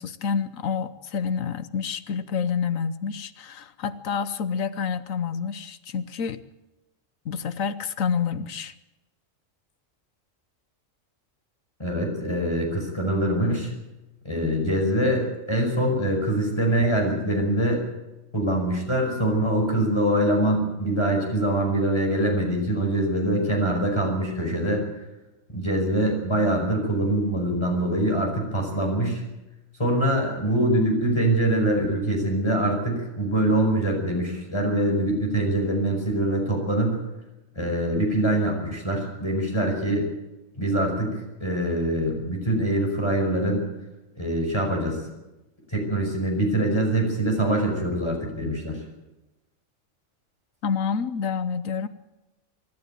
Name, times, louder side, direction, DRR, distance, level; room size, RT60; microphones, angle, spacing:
voice 1, 0.0-6.4 7.2-8.7 50.6-51.9, left 6 dB, 80° left, 13 dB, 1.3 m, -28 dB
voice 2, 11.8-13.7 14.2-17.8 18.3-24.8 25.5-29.2 29.8-37.0 37.6-40.1 40.6-43.6 44.2-45.0 45.7-48.8, right 1 dB, 20° left, 1 dB, 5.4 m, -24 dB
24.5 x 12.0 x 9.2 m, 1.0 s
omnidirectional pair, 1.4 m